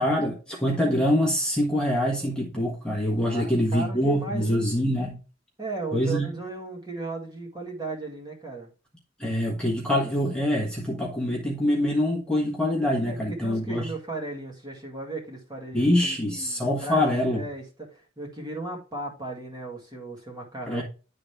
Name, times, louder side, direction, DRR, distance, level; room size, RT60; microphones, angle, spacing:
voice 1, 0.0-5.2 5.9-6.3 9.2-13.9 15.7-17.4 20.7-20.8, left 1 dB, 5° left, 1.4 m, -25 dB
voice 2, 3.3-4.6 5.6-8.7 13.0-20.8, right 2 dB, 20° right, 2.0 m, -36 dB
10.5 x 3.9 x 3.3 m
head